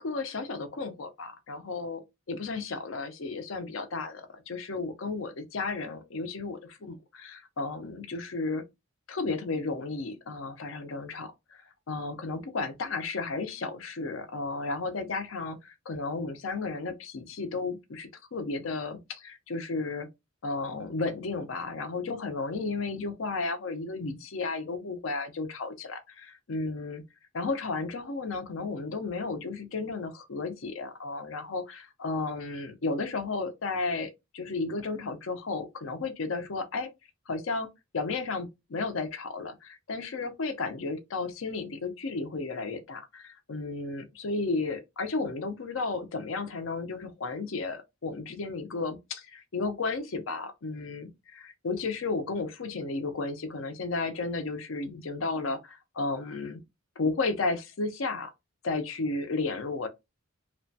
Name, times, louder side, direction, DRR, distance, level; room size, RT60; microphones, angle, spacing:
voice 1, 0.0-2.0 2.3-8.6 9.1-11.3 11.9-20.1 20.4-27.0 27.3-36.9 37.3-37.7 37.9-56.6 57.0-58.3 58.6-59.9, left 3 dB, 75° left, 0.6 m, -33 dB
2.9 x 2.2 x 2.6 m
head